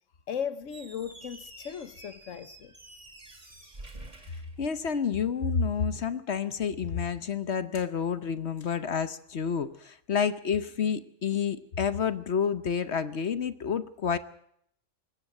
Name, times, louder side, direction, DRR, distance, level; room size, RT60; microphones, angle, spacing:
voice 1, 0.3-2.7, left 8 dB, 80° left, 1.4 m, -36 dB
Squeak, 0.6-5.3, right 2 dB, 35° right, 2.6 m, -49 dB
voice 2, 4.6-14.2, left 6 dB, 60° left, 1.2 m, -29 dB
21.0 x 17.0 x 7.7 m
omnidirectional pair, 1.3 m